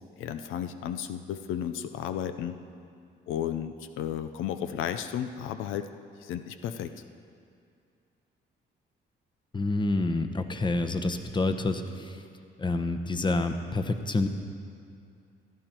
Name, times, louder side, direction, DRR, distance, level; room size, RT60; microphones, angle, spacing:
voice 1, 0.2-2.6 3.3-5.9 6.2-6.9, left 9 dB, 90° left, 9 dB, 0.6 m, -33 dB
voice 2, 9.5-12.2 12.6-14.3, left 2 dB, 25° left, 7 dB, 1.0 m, -28 dB
16.5 x 12.0 x 4.5 m, 2.4 s
cardioid pair, 90°, 20 cm